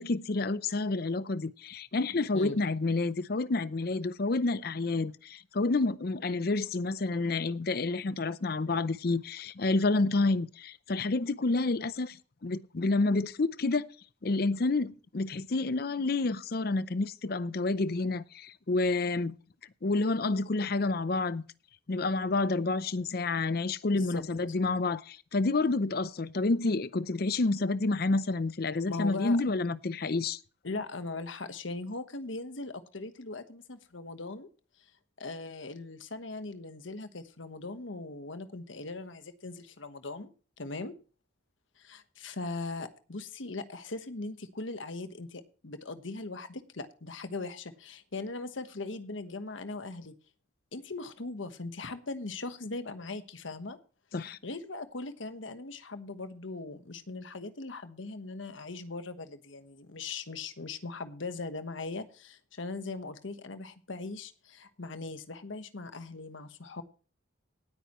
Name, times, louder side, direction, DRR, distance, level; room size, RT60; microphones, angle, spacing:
voice 1, 0.0-12.2 12.4-13.9 14.2-19.4 19.8-21.4 21.9-30.4 54.1-54.4, left 3 dB, 50° left, 0.6 m, -29 dB
voice 2, 23.9-24.2 28.9-29.4 30.6-34.5 35.2-40.3 40.6-40.9 41.8-50.1 50.7-53.8 54.1-66.8, left 3 dB, 75° left, 1.3 m, -40 dB
18.5 x 9.0 x 3.1 m
head